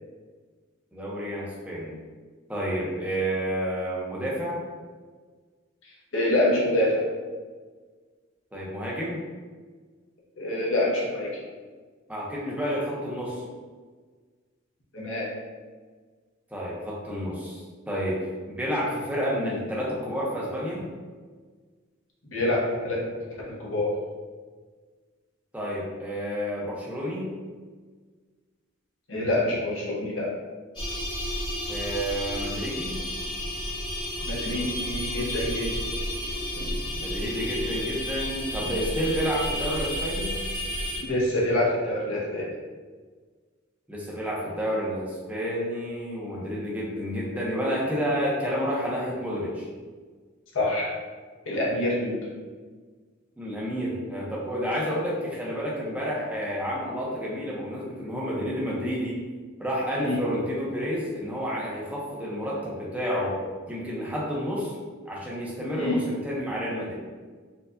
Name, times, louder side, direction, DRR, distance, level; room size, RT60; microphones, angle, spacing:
voice 1, 0.9-2.0 2.5-4.6 8.5-9.2 12.1-13.4 16.5-18.2 18.5-20.8 25.5-27.3 31.7-33.0 37.0-40.3 43.9-49.7 53.4-59.2 59.6-63.3 63.7-64.7 65.0-67.0, equal, 5° right, -5 dB, 0.7 m, -30 dB
voice 2, 6.1-7.0 10.4-11.3 14.9-15.3 22.3-23.0 23.7-23.9 29.1-30.3 34.2-35.7 36.6-36.7 41.0-42.5 50.5-50.9 51.5-52.1 60.0-60.2 65.8-66.0, left 1 dB, 75° left, -4 dB, 0.9 m, -26 dB
sound 1, 30.8-41.0, left 1 dB, 25° left, 1.0 m, -31 dB
4.4 x 2.3 x 2.6 m, 1.5 s
head